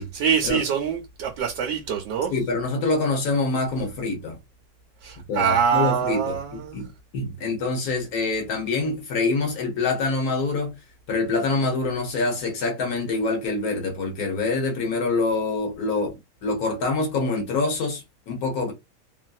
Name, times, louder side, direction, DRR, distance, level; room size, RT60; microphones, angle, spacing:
voice 1, 0.0-2.4 5.0-6.8, right 7 dB, 75° right, 1.2 m, -24 dB
voice 2, 2.3-4.4 5.3-10.7 11.1-16.2 16.4-18.7, left 3 dB, 65° left, 1.2 m, -25 dB
3.1 x 2.5 x 2.2 m
omnidirectional pair, 1.9 m